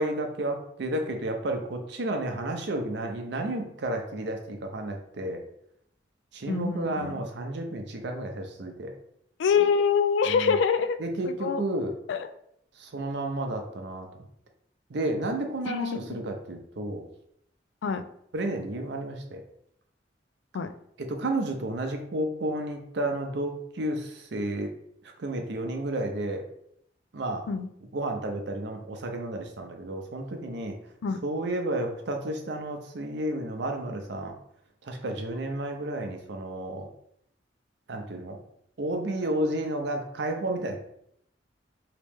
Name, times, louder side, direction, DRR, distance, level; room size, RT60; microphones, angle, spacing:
voice 1, 0.0-5.4 6.3-8.9 10.3-10.6 11.0-11.9 12.8-14.2 14.9-17.1 18.3-19.4 21.0-24.7 25.2-26.5 27.1-27.4 27.9-30.7 31.2-34.3 34.8-36.9 37.9-38.4 38.8-40.8, right 1 dB, 65° right, 4 dB, 0.6 m, -31 dB
voice 2, 6.5-7.1 9.4-11.0 11.2-11.6 12.1-12.3 15.7-16.2 17.8-18.0 20.5-20.7 27.5-27.7 31.0-31.2, left 6 dB, 75° left, 10 dB, 0.3 m, -25 dB
3.1 x 2.9 x 3.4 m, 0.73 s
head